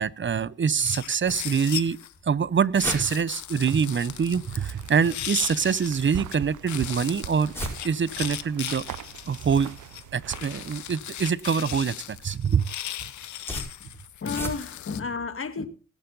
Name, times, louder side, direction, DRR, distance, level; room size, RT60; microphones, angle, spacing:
voice 1, 0.0-2.0 2.2-7.5 7.8-8.8 9.3-9.7 10.1-12.7, right 6 dB, 40° right, 0.8 m, -25 dB
sound 1, 0.8-2.1 2.8-6.4 6.7-15.0, left 12 dB, 80° left, 0.8 m, -37 dB
sound 2, 2.1-14.9, left 1 dB, 10° left, 5.5 m, -42 dB
sound 3, 3.5-10.9, right 13 dB, 85° right, 0.8 m, -42 dB
voice 2, 14.2-15.7, left 4 dB, 45° left, 2.2 m, -32 dB
20.0 x 7.0 x 3.9 m
cardioid pair, 65°, 30 cm